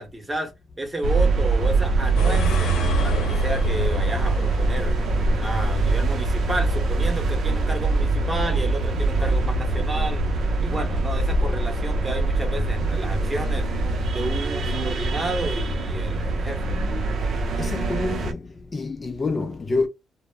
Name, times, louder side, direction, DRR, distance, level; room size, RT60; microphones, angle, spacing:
voice 1, 0.0-2.8 3.0-5.0 5.4-10.2 10.6-13.7 14.1-16.9, right 2 dB, 20° right, 0.9 m, -31 dB
sound 1, 1.0-18.3, right 2 dB, 55° right, 0.6 m, -23 dB
sound 2, 2.2-17.8, right 1 dB, 85° left, 0.7 m, -35 dB
voice 2, 17.6-18.4 18.7-19.9, left 3 dB, 30° left, 0.4 m, -27 dB
2.0 x 2.0 x 3.4 m
cardioid pair, 90°, 0 cm